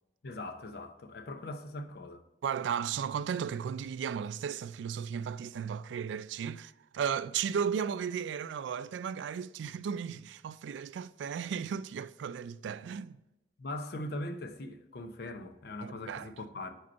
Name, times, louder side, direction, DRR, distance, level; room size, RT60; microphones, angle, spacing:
voice 1, 0.2-2.2 13.6-16.8, left 1 dB, 60° left, 0.6 m, -41 dB
voice 2, 2.4-13.2 15.8-16.3, right 7 dB, 90° right, 0.3 m, -35 dB
5.1 x 4.6 x 4.1 m
head